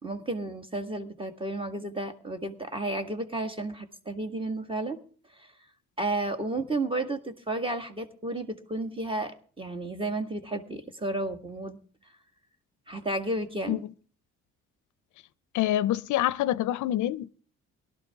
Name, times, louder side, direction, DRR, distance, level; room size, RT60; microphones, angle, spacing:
voice 1, 0.0-5.0 5.4-5.5 6.0-11.8 12.9-13.9, right 2 dB, 15° right, 1.8 m, -32 dB
voice 2, 15.5-17.3, left 13 dB, 75° left, 0.5 m, -26 dB
18.0 x 12.0 x 3.6 m
cardioid pair, 90°, 30 cm